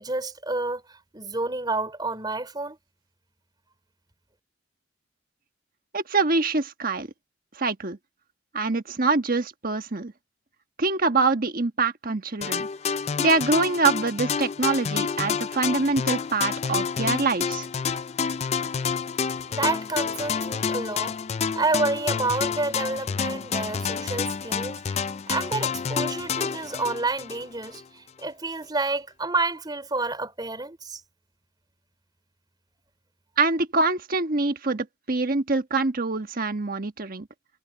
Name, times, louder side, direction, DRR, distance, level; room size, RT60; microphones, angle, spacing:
voice 1, 0.0-2.8 19.5-21.1 21.5-31.0, right 3 dB, 20° right, 3.3 m, -29 dB
voice 2, 5.9-7.1 7.5-8.0 8.5-10.1 10.8-12.7 13.2-17.7 33.4-37.3, right 3 dB, 45° right, 1.4 m, -25 dB
sound 1, 12.4-27.8, left 6 dB, 30° left, 0.3 m, -29 dB
head